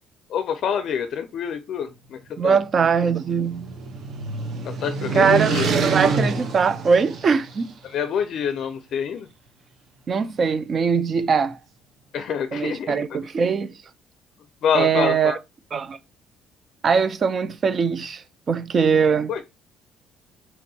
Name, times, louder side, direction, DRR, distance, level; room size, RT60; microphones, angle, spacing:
voice 1, 0.3-2.6 4.6-5.7 7.8-9.3 12.1-12.9 14.6-15.4 19.3-19.4, left 7 dB, 55° left, 0.4 m, -26 dB
voice 2, 2.4-3.7 5.1-7.7 10.1-11.6 12.5-13.7 14.7-15.4 15.7-16.0 16.8-18.2 18.5-19.3, right 5 dB, 35° right, 0.4 m, -21 dB
sound 1, 2.9-7.6, right 4 dB, 55° right, 0.8 m, -27 dB
4.5 x 2.7 x 2.7 m
cardioid pair, 130°, 0 cm